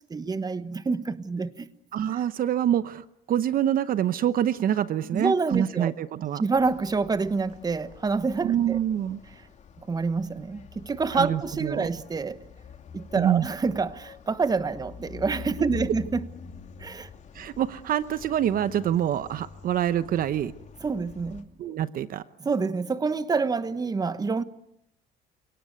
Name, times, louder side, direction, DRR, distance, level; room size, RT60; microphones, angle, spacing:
voice 1, 0.0-1.7 5.1-5.9 6.4-8.8 9.8-12.4 12.9-16.2 16.8-17.1 20.8-21.5 22.4-24.4, right 4 dB, 25° right, 1.2 m, -27 dB
voice 2, 1.9-6.4 8.4-9.2 11.1-11.9 13.1-13.5 17.3-20.5 21.6-22.2, right 10 dB, 60° right, 0.9 m, -26 dB
sound 1, 6.5-21.4, left 7 dB, 45° left, 2.9 m, -46 dB
29.0 x 18.5 x 9.5 m
cardioid pair, 110°, 17 cm